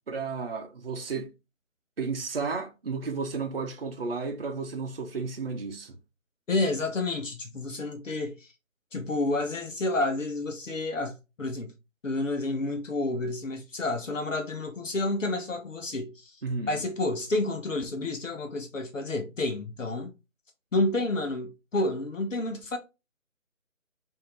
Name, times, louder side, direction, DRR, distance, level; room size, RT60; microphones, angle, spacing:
voice 1, 0.1-1.3 2.0-6.0 16.4-16.8, right 4 dB, 45° right, 0.8 m, -33 dB
voice 2, 6.5-8.5 8.9-11.7 12.0-16.4 16.7-20.1 20.7-22.8, left 2 dB, 65° left, 1.0 m, -30 dB
5.1 x 2.8 x 3.2 m
figure-of-eight pair, 170°, 41 cm